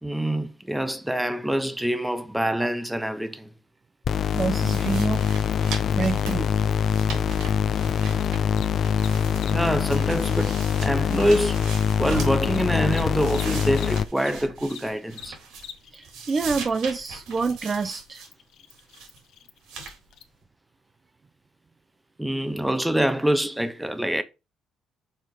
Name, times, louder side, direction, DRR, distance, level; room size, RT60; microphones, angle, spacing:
voice 1, 0.0-3.5 9.4-11.7 12.0-15.4 22.2-24.2, right 1 dB, 5° right, 0.8 m, -25 dB
sound 1, 4.1-14.0, left 8 dB, 50° left, 0.3 m, -24 dB
voice 2, 4.3-5.3 6.0-6.5 7.1-7.2 15.9-18.2, right 4 dB, 30° right, 0.6 m, -27 dB
sound 2, 4.3-8.6 8.8-12.4 12.8-15.8 16.0-18.3 18.7-19.2 19.7-20.0, right 4 dB, 85° right, 3.3 m, -40 dB
Cricket, 4.7-14.3 14.6-20.2, left 9 dB, 75° left, 1.2 m, -48 dB
6.5 x 4.6 x 5.2 m
cardioid pair, 120°, 0 cm